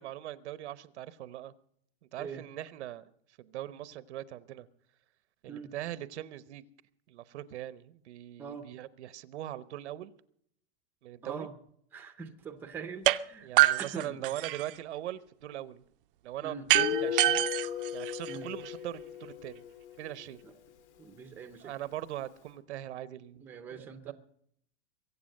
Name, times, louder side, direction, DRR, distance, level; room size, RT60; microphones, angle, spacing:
voice 1, 0.0-1.5 2.1-3.1 3.4-4.7 5.4-6.6 7.1-10.1 11.0-11.5 13.4-15.8 16.2-17.5 17.9-19.6 20.0-20.4 21.6-23.4 23.7-24.1, right 13 dB, 80° right, 1.0 m, -41 dB
voice 2, 11.2-11.5 11.9-13.5 13.8-14.3 16.4-16.7 18.3-18.5 20.4-20.5 21.0-21.7 23.4-24.1, right 5 dB, 5° right, 0.6 m, -43 dB
sound 1, 13.1-13.2 13.6-14.8 16.7-18.7, right 16 dB, 55° right, 0.6 m, -26 dB
Guitar, 16.7-20.3, left 9 dB, 90° left, 2.1 m, -36 dB
22.5 x 8.3 x 6.5 m
supercardioid pair, 175°, 34 cm